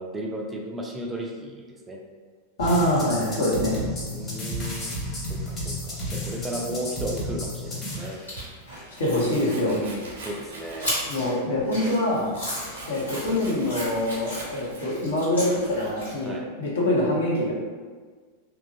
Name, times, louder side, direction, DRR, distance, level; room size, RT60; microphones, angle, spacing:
voice 1, 0.0-2.0 3.0-3.2 4.1-8.2 9.7-11.0 16.2-16.5, right 1 dB, 15° right, 0 dB, 0.3 m, -35 dB
voice 2, 2.6-3.8 9.0-9.8 11.0-12.3 12.9-17.5, left 1 dB, 65° left, -5 dB, 0.8 m, -24 dB
sound 1, 2.6-8.0, equal, 25° left, 1.0 m, -32 dB
sound 2, 7.9-16.3, equal, 85° left, 1.2 m, -36 dB
Domestic sounds home sounds, 7.9-8.5 9.0-11.3 11.6-15.1, right 2 dB, 60° right, 0.6 m, -42 dB
2.9 x 2.4 x 2.5 m, 1.5 s
figure-of-eight pair, 90°, 0 cm